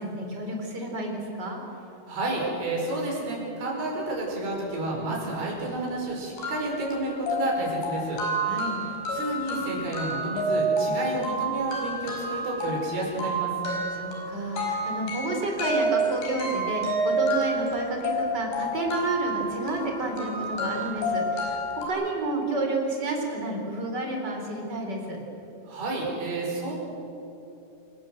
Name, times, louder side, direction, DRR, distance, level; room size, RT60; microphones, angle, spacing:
voice 1, 0.0-1.6 8.5-8.8 10.8-11.0 13.9-21.6 21.9-25.2, right 2 dB, 25° right, 1 dB, 4.3 m, -30 dB
voice 2, 2.1-8.2 9.1-13.5 25.7-26.7, right 2 dB, 70° right, -2 dB, 7.3 m, -30 dB
sound 1, 5.9-6.0 6.4-21.9, right 1 dB, 85° left, 6.9 m, -29 dB
28.0 x 18.5 x 7.9 m, 2.9 s
omnidirectional pair, 4.7 m